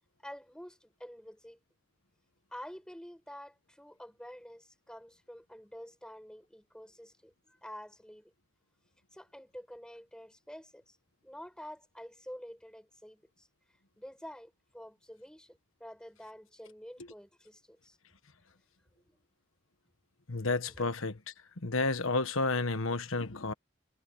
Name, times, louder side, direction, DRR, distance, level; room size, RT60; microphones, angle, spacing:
voice 1, 0.2-1.6 2.5-8.3 9.1-11.0 11.2-13.5 14.0-18.0 19.1-19.2 20.7-20.8, equal, 5° left, 7.5 m, -49 dB
voice 2, 20.3-21.1 21.6-23.5, left 3 dB, 80° left, 1.4 m, -31 dB
head